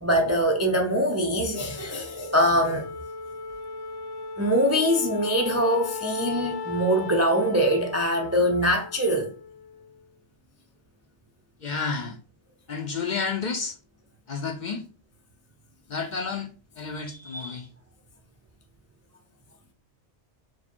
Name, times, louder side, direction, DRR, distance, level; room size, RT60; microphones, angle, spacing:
voice 1, 0.0-2.9 4.4-9.3, equal, 25° right, 0.3 m, -23 dB
Wind instrument woodwind instrument, 1.5-10.1, left 4 dB, 80° left, 0.9 m, -37 dB
voice 2, 11.6-12.2 12.7-13.8 14.3-14.9 15.9-17.7, left 5 dB, 55° left, 0.6 m, -31 dB
4.6 x 2.1 x 4.3 m
omnidirectional pair, 1.2 m